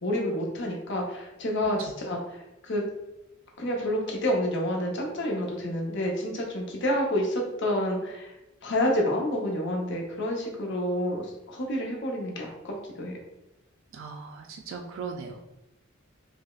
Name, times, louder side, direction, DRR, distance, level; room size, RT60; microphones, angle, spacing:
voice 1, 0.0-2.8 3.6-8.3 8.6-13.2, left 1 dB, 60° left, -1 dB, 0.8 m, -29 dB
voice 2, 13.9-15.4, right 5 dB, 65° right, 4 dB, 0.4 m, -38 dB
4.9 x 2.0 x 2.3 m, 0.95 s
head